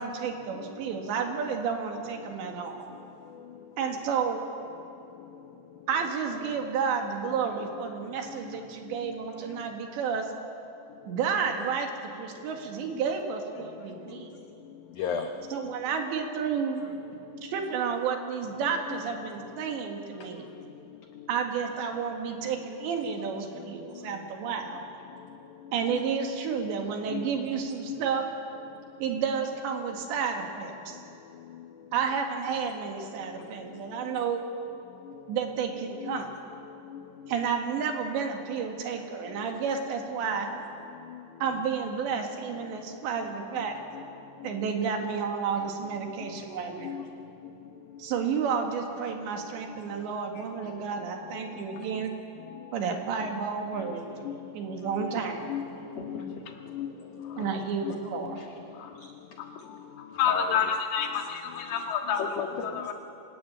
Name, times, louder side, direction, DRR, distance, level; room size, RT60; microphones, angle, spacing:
voice 1, 0.0-2.9 3.8-4.4 5.9-10.3 11.1-11.9 12.2-14.4 15.5-16.8 17.4-20.5 21.3-24.8 25.7-28.2 29.0-31.0 31.9-34.4 35.3-36.3 37.3-40.5 41.4-43.8 44.4-46.9 48.0-52.1 52.7-54.1 54.5-55.5 57.4-58.4, right 6 dB, 80° right, 3 dB, 4.2 m, -31 dB
voice 2, 8.2-8.6 8.8-9.1 9.5-9.6 13.0-13.2 13.6-13.7 15.0-15.5 17.5-17.7 18.6-19.0 21.2-21.3 22.4-22.6 23.5-24.2 25.6-26.0 26.6-26.7 27.1-27.3 27.7-28.0 31.5-31.7 34.1-34.2 35.0-35.2 36.0-36.3 36.7-37.5 39.3-39.4 40.9-41.6 42.1-42.2 42.5-42.6 43.2-43.3 43.6-43.7 43.9-44.0 44.4-44.7 46.2-46.3 46.8-47.1 49.9-50.0 50.4-50.7 51.2-52.1 52.4-52.9 53.7-55.2 55.4-58.0 58.2-58.5 59.0-59.1 59.7-60.7 61.0-61.8 62.1-62.2 62.7-62.9, left 7 dB, 90° left, 5 dB, 1.7 m, -40 dB
voice 3, 55.5-56.4 56.7-57.5 58.7-58.9 59.4-59.7 60.1-62.9, left 7 dB, 65° left, 3 dB, 3.6 m, -31 dB
26.0 x 19.5 x 8.8 m, 2.8 s
omnidirectional pair, 5.0 m